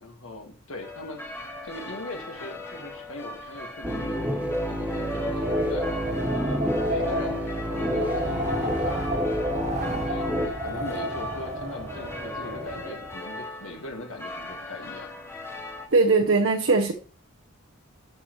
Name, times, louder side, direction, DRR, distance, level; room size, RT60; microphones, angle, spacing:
voice 1, 0.0-4.3 4.7-5.9 6.3-7.4 7.7-10.3 10.6-15.1, left 2 dB, 85° left, 1.6 m, -40 dB
sound 1, 0.8-15.9, left 2 dB, 10° left, 1.2 m, -40 dB
sound 2, 3.8-10.5, equal, 10° right, 0.8 m, -29 dB
Wind, 4.7-13.1, right 1 dB, 35° right, 1.4 m, -32 dB
voice 2, 15.9-16.9, right 3 dB, 70° right, 0.9 m, -20 dB
11.0 x 6.4 x 3.1 m
head